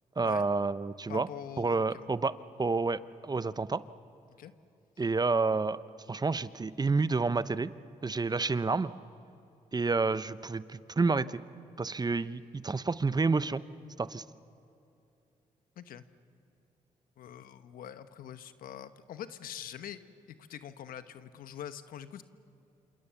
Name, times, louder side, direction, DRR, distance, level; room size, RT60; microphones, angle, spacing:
voice 1, 0.2-1.3 1.6-3.8 5.0-5.8 6.1-7.7 8.0-8.9 9.7-11.4 11.8-13.6 14.0-14.2, right 4 dB, 25° right, 15 dB, 0.8 m, -29 dB
voice 2, 1.1-2.1 4.4-4.5 15.8-16.0 17.2-20.0 20.3-22.2, left 10 dB, 80° left, 11 dB, 1.1 m, -44 dB
28.0 x 27.0 x 7.1 m, 2.7 s
supercardioid pair, 60°, 15 cm